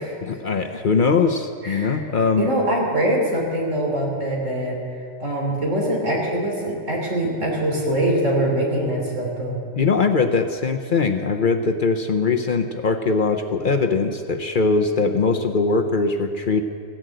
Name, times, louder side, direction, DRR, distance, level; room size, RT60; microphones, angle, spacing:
voice 1, 0.2-2.5 9.7-16.6, left 4 dB, 50° left, 6 dB, 0.8 m, -21 dB
voice 2, 1.6-2.0 2.4-4.8 5.2-9.6, right 1 dB, 80° right, -1 dB, 3.5 m, -23 dB
16.0 x 10.0 x 7.8 m, 2.2 s
omnidirectional pair, 1.3 m